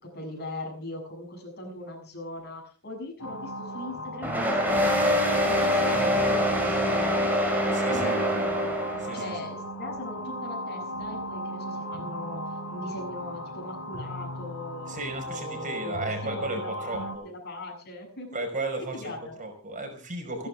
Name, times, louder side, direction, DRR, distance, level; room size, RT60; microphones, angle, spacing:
voice 1, 0.0-7.2 7.6-8.8 9.1-12.4 12.7-18.3 18.9-19.3, left 1 dB, 50° left, 0 dB, 7.1 m, -40 dB
sound 1, 3.2-17.2, equal, 80° left, 4.0 m, -37 dB
sound 2, 4.2-9.3, equal, 10° right, 5.4 m, -24 dB
voice 2, 7.7-8.2 9.0-9.3 14.9-17.3 18.3-19.1 19.4-20.5, right 2 dB, 35° right, 4 dB, 5.4 m, -34 dB
29.5 x 11.0 x 3.6 m, 0.37 s
head